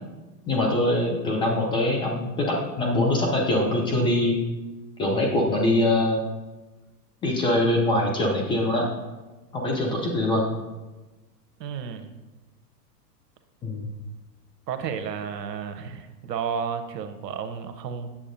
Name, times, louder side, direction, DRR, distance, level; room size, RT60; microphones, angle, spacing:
voice 1, 0.5-4.4 5.0-6.2 7.2-8.9 9.5-10.5 13.6-13.9, left 1 dB, 10° left, -1 dB, 0.3 m, -23 dB
voice 2, 11.6-12.1 14.7-18.1, right 7 dB, 80° right, 8 dB, 0.9 m, -32 dB
8.5 x 7.2 x 2.6 m, 1.2 s
hypercardioid pair, 110°, 49 cm